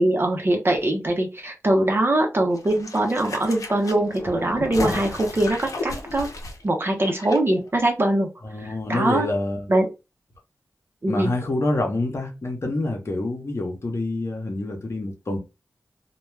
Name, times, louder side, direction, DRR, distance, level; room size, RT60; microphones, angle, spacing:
voice 1, 0.0-6.3 6.6-8.3 8.9-9.3 9.7-9.9 11.0-11.3, right 1 dB, 40° right, 0.8 m, -22 dB
sound 1, 2.5-7.4 7.7-7.8, left 2 dB, 75° left, 0.6 m, -33 dB
voice 2, 8.4-9.7 11.1-15.4, left 2 dB, 50° left, 0.9 m, -27 dB
2.3 x 2.2 x 3.2 m
cardioid pair, 55°, 6 cm